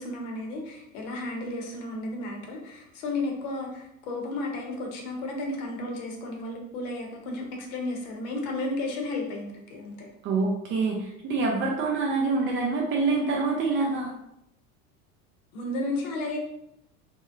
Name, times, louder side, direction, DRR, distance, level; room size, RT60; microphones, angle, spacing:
voice 1, 0.0-10.1 15.5-16.4, left 2 dB, 55° left, 1 dB, 0.8 m, -33 dB
voice 2, 10.2-14.1, right 3 dB, 30° right, 0 dB, 0.3 m, -26 dB
2.6 x 2.0 x 2.4 m, 0.79 s
hypercardioid pair, 80°, 43 cm